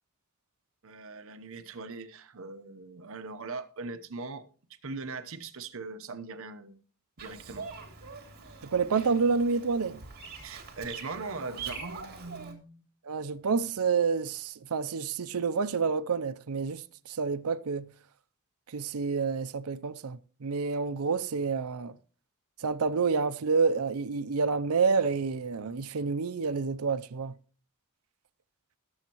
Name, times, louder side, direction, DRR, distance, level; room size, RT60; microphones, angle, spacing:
voice 1, 0.8-4.5 4.8-6.8 7.2-7.7 10.4-12.9, right 3 dB, 65° right, 0.9 m, -40 dB
Bird vocalization bird call bird song, 7.2-12.5, right 5 dB, 50° right, 2.8 m, -43 dB
voice 2, 8.7-10.0 13.1-16.8 17.1-17.9 18.7-21.9 22.6-27.3, right 5 dB, 90° right, 0.6 m, -28 dB
21.0 x 7.2 x 3.0 m
head